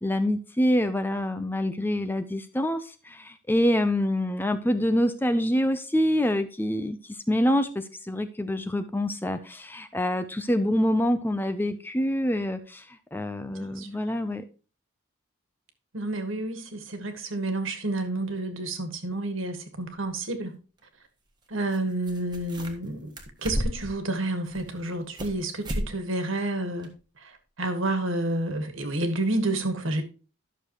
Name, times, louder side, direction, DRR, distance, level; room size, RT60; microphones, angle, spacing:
voice 1, 0.0-14.4, equal, 10° left, 0.5 m, -26 dB
voice 2, 13.5-14.0 15.9-20.5 21.5-23.1 23.4-26.9 27.2-30.0, right 2 dB, 70° right, 1.7 m, -30 dB
sound 1, 20.0-20.1 21.7-21.8 22.0-22.9 23.2-24.0 24.5-25.4 25.6-25.9 26.2-26.3 26.8-26.9, equal, 20° right, 1.4 m, -32 dB
12.0 x 6.5 x 3.0 m
head